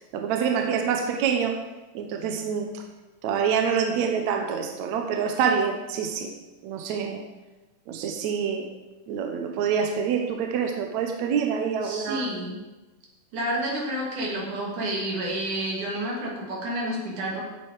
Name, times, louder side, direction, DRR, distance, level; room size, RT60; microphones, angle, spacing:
voice 1, 0.1-1.6 1.9-2.7 3.2-6.3 6.6-7.2 7.9-8.7 9.1-12.3, right 7 dB, 70° right, 4 dB, 1.8 m, -26 dB
voice 2, 11.8-12.6 13.3-17.4, right 1 dB, 55° right, -2 dB, 3.9 m, -30 dB
16.0 x 7.7 x 4.9 m, 1.1 s
omnidirectional pair, 4.5 m